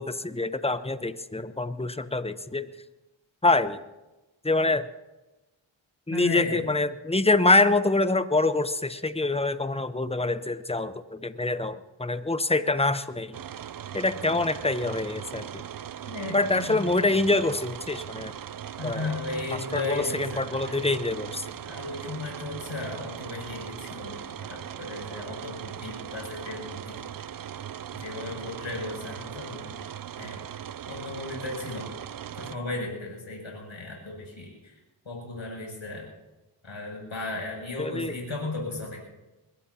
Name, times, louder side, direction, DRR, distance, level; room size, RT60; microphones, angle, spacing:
voice 1, 0.0-2.7 3.4-3.8 4.4-4.8 6.1-13.4 13.9-15.6 16.3-18.3 18.8-19.1 19.5-21.5 37.8-38.2, left 2 dB, 10° left, 12 dB, 0.8 m, -25 dB
voice 2, 6.1-6.7 16.0-16.8 18.8-20.8 21.6-27.0 27.9-29.8 30.2-30.4 30.9-31.9 32.4-34.8 35.1-36.1 36.6-39.0, left 2 dB, 65° left, -1 dB, 6.9 m, -35 dB
sound 1, 13.3-32.6, right 9 dB, 45° right, 0.5 m, -39 dB
22.5 x 21.5 x 2.8 m, 1.1 s
wide cardioid pair, 55°, 50 cm